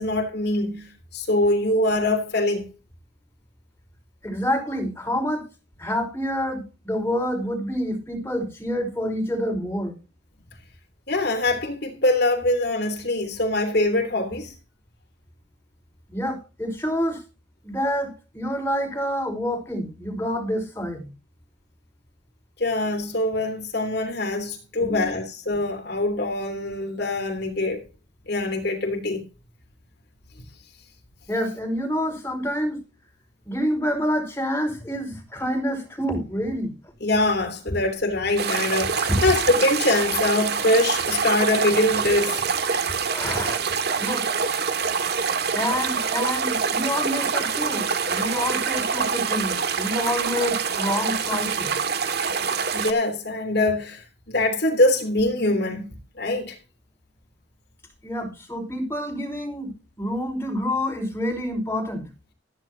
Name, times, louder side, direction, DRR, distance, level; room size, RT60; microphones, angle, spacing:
voice 1, 0.0-2.7 11.1-14.5 22.6-27.8 28.3-29.2 37.0-42.4 52.7-56.6, left 2 dB, 55° left, 3.2 m, -23 dB
voice 2, 4.2-5.5 5.8-9.9 16.1-17.2 17.6-21.1 24.8-25.2 31.3-32.8 33.4-36.7 39.1-39.2 43.1-43.6 44.0-44.3 45.5-51.7 58.0-59.7 60.0-62.1, equal, 10° left, 5.2 m, -27 dB
sound 1, 38.4-52.9, right 6 dB, 55° right, 2.0 m, -25 dB
15.0 x 14.5 x 2.8 m
head